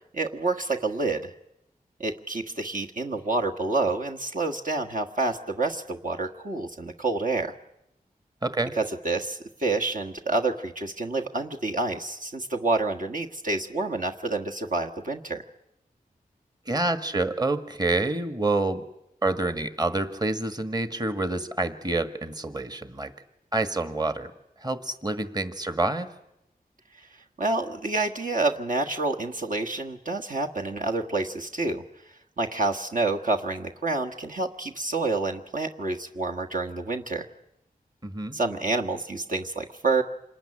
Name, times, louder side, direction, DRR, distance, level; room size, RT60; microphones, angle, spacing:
voice 1, 0.1-1.3 2.0-7.5 8.8-15.4 27.4-31.8 32.4-37.3 38.3-40.0, right 3 dB, 60° right, 1 dB, 1.6 m, -28 dB
voice 2, 8.4-8.7 16.7-18.8 19.2-23.1 23.5-24.3 24.6-26.1 38.0-38.3, right 2 dB, 25° right, 9 dB, 1.7 m, -27 dB
26.5 x 19.5 x 9.9 m, 0.85 s
wide cardioid pair, 65°, 15 cm